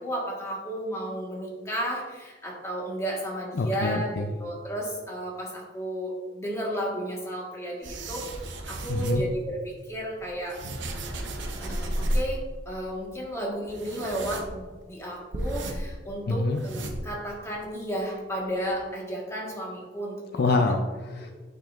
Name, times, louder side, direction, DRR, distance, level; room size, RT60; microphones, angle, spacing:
voice 1, 0.0-8.3 8.7-10.6 11.6-20.5, right 1 dB, 15° left, -3 dB, 1.5 m, -33 dB
voice 2, 3.5-4.2 8.9-9.2 16.3-16.6 20.3-21.3, left 3 dB, 55° left, 5 dB, 0.4 m, -26 dB
sound 1, 7.8-9.4 10.1-12.5 12.7-12.8 13.0-13.2 13.7-14.8 15.3-16.1 16.4-17.3 17.6-17.7 18.4-18.5 18.7-18.8, right 1 dB, 70° right, 0.8 m, -33 dB
8.8 x 5.2 x 2.5 m, 1.4 s
head